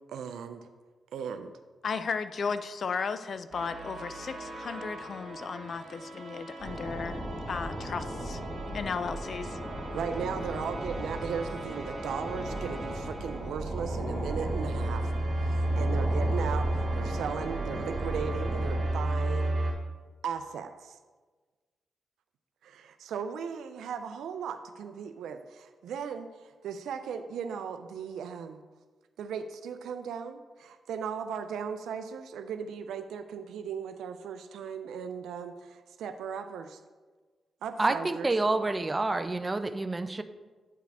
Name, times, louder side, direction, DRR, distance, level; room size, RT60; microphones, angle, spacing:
voice 1, 0.1-0.7 1.1-1.5 9.9-15.1 15.4-19.5 20.2-21.0 22.6-28.6 29.2-36.8 37.6-38.3, right 7 dB, 85° right, 8 dB, 0.3 m, -37 dB
voice 2, 1.8-7.2 7.5-8.4 8.7-9.6, left 5 dB, 55° left, 12 dB, 0.4 m, -35 dB
sound 1, 3.5-19.7, right 2 dB, 50° right, 2.1 m, -34 dB
sound 2, 6.6-18.9, equal, 15° left, 1.9 m, -37 dB
voice 3, 37.8-40.2, right 2 dB, 25° right, 10 dB, 0.4 m, -28 dB
8.9 x 4.7 x 3.4 m, 1.4 s
cardioid pair, 75°, 0 cm